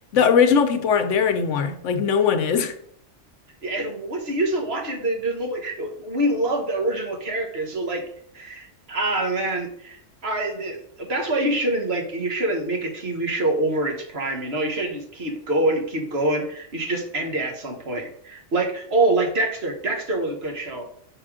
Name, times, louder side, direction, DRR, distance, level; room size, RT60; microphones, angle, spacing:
voice 1, 0.1-2.7, left 6 dB, 75° left, 1.0 m, -20 dB
voice 2, 3.6-8.0 8.3-20.9, right 2 dB, 55° right, 1.4 m, -25 dB
5.4 x 5.0 x 4.9 m
omnidirectional pair, 1.3 m